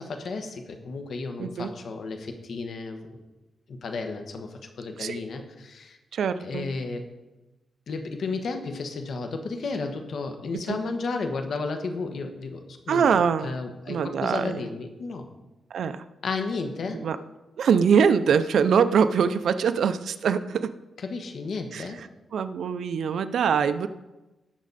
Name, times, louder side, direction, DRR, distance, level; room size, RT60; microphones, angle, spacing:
voice 1, 0.0-3.2 3.7-6.0 6.4-7.1 7.9-15.2 16.2-17.1 21.0-22.0, left 4 dB, 60° left, 5 dB, 1.4 m, -33 dB
voice 2, 1.4-1.7 5.0-5.2 6.1-6.7 10.7-10.8 12.9-13.6 13.9-14.6 15.7-16.0 17.0-17.2 17.6-20.7 21.7-21.9 22.3-23.9, right 6 dB, 70° right, 11 dB, 0.5 m, -23 dB
18.0 x 6.2 x 4.2 m, 1.1 s
cardioid pair, 115°, 0 cm